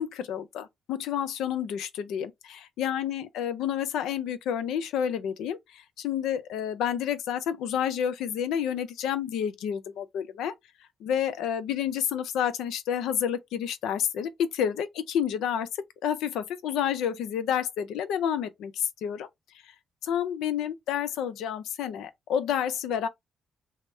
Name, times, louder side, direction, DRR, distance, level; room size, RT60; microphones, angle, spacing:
voice 1, 0.0-2.3 2.8-10.5 11.0-15.7 16.0-19.3 20.0-23.1, left 9 dB, 85° left, 0.5 m, -29 dB
2.9 x 2.1 x 3.3 m
cardioid pair, 90°, 0 cm